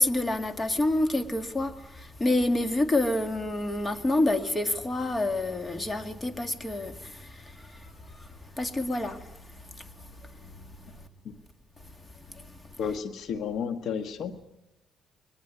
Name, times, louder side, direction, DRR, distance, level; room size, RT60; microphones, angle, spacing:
voice 1, 0.0-11.1 11.8-12.7, left 2 dB, 25° left, 2.2 m, -29 dB
voice 2, 12.8-14.5, left 6 dB, 75° left, 1.6 m, -32 dB
22.5 x 19.5 x 9.6 m
cardioid pair, 90°, 0 cm